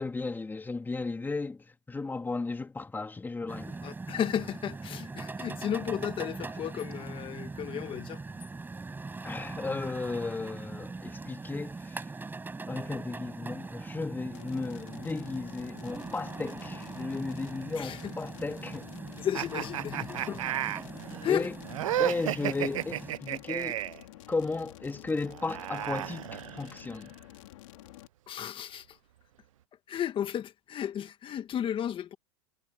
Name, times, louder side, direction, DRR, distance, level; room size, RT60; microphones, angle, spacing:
voice 1, 0.0-3.7 9.2-12.1 12.7-18.9 21.3-21.5 22.0-23.8 24.3-27.1, left 3 dB, 10° left, 3.4 m, -35 dB
sound 1, 3.5-23.1, right 3 dB, 10° right, 5.3 m, -41 dB
voice 2, 3.8-8.2 17.8-18.1 19.2-20.4 21.2-21.5 28.3-29.0 29.9-32.2, left 9 dB, 30° left, 1.7 m, -33 dB
sound 2, 14.3-28.1, left 16 dB, 75° left, 4.0 m, -50 dB
sound 3, 19.3-24.0 25.2-26.9, right 13 dB, 85° right, 0.7 m, -33 dB
hypercardioid pair, 115°, 17 cm